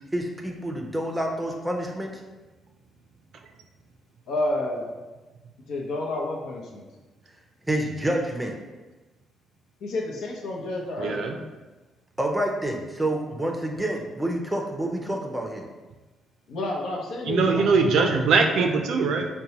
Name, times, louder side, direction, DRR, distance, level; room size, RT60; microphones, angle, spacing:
voice 1, 0.1-2.1 7.7-8.5 12.2-15.7, right 1 dB, 10° right, 1 dB, 0.5 m, -28 dB
voice 2, 4.3-4.9 5.7-6.8 9.8-11.2 16.5-18.1 18.5-18.7, left 2 dB, 80° left, 0 dB, 0.7 m, -30 dB
voice 3, 11.0-11.4 17.2-19.3, right 4 dB, 75° right, 4 dB, 0.4 m, -22 dB
5.2 x 2.2 x 2.8 m, 1.2 s
cardioid pair, 90°, 0 cm